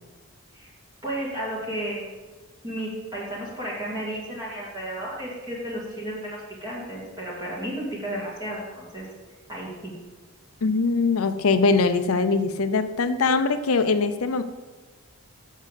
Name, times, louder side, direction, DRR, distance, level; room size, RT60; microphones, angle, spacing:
voice 1, 1.0-2.2 2.6-9.0 9.5-9.9, right 1 dB, 20° right, -6 dB, 2.1 m, -33 dB
voice 2, 10.6-14.4, left 4 dB, 75° left, 9 dB, 0.6 m, -22 dB
6.7 x 6.3 x 6.7 m, 1.4 s
head